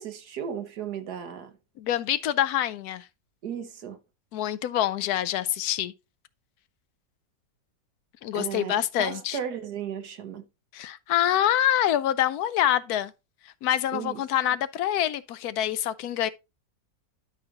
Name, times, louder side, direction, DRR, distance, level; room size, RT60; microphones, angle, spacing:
voice 1, 0.0-1.6 3.4-4.0 8.3-10.4 13.9-14.2, right 8 dB, 65° right, 1.5 m, -35 dB
voice 2, 1.8-3.0 4.3-5.9 8.2-9.4 10.7-13.1 13.6-16.3, left 11 dB, 70° left, 0.9 m, -26 dB
12.5 x 5.0 x 2.9 m
omnidirectional pair, 1.9 m